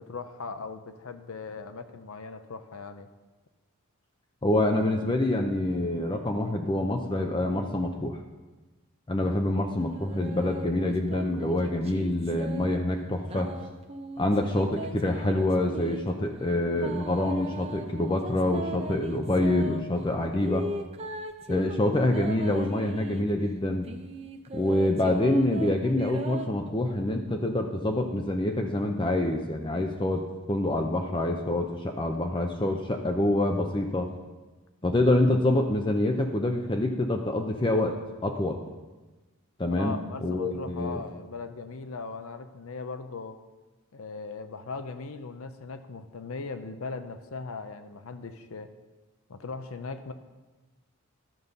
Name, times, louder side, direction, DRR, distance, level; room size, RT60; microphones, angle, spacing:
voice 1, 0.0-3.1 39.7-43.4 43.9-48.7 49.3-50.1, left 4 dB, 70° left, 9 dB, 0.6 m, -39 dB
voice 2, 4.4-8.2 9.1-13.6 14.2-20.7 21.5-23.9 24.5-34.1 34.8-38.0 38.2-38.6 39.6-41.0, left 1 dB, 20° left, 3 dB, 0.5 m, -26 dB
sound 1, 9.8-12.8 13.2-16.0 16.8-19.8 20.4-23.3 23.8-26.5, right 1 dB, 30° right, 0.6 m, -38 dB
12.0 x 5.5 x 6.6 m, 1.2 s
head